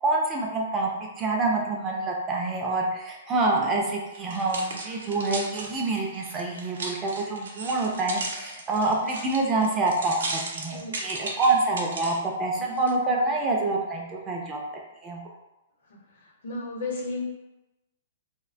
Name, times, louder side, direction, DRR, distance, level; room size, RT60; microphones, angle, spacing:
voice 1, 0.0-14.6 15.0-15.2, right 2 dB, 15° right, -1 dB, 0.3 m, -26 dB
sound 1, 4.2-12.2 12.8-12.9, right 3 dB, 90° right, 0.5 m, -36 dB
voice 2, 10.7-11.1 12.6-12.7 15.9-17.2, left 2 dB, 60° left, -2 dB, 0.8 m, -35 dB
2.6 x 2.1 x 2.4 m, 0.97 s
hypercardioid pair, 155°, 0 cm